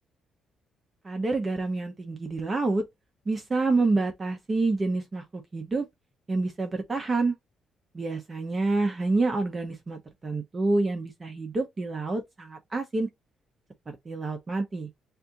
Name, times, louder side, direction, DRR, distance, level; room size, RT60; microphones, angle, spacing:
voice 1, 1.0-2.9 3.3-5.9 6.3-7.3 7.9-13.1 13.9-14.9, right 3 dB, 30° right, 1.1 m, -28 dB
4.2 x 2.8 x 3.8 m
cardioid pair, 90°, 0 cm